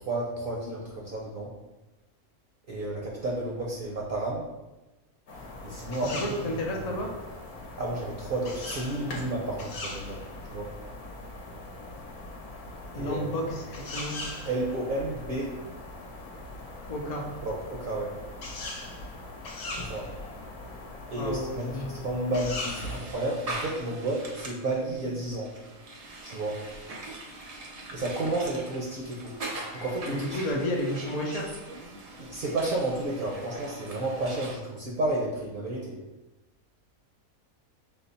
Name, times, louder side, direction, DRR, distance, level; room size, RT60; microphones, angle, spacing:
voice 1, 0.0-1.5 2.7-4.4 5.6-6.6 7.8-10.7 12.9-13.5 14.5-15.5 17.4-18.1 19.8-20.1 21.1-25.5 26.2-26.6 27.9-29.3 29.7-30.2 30.5-30.6 32.2-36.0, right 2 dB, 50° right, -2 dB, 0.7 m, -31 dB
sound 1, 5.3-23.0, left 2 dB, 75° left, 1.3 m, -40 dB
voice 2, 6.2-7.1 12.9-13.7 13.9-14.2 16.9-17.2 21.2-21.9 30.1-31.5, left 1 dB, 45° left, 0 dB, 0.5 m, -31 dB
sound 2, 22.7-34.6, right 2 dB, 80° right, 0.3 m, -42 dB
5.6 x 2.1 x 4.0 m, 1.1 s
omnidirectional pair, 1.6 m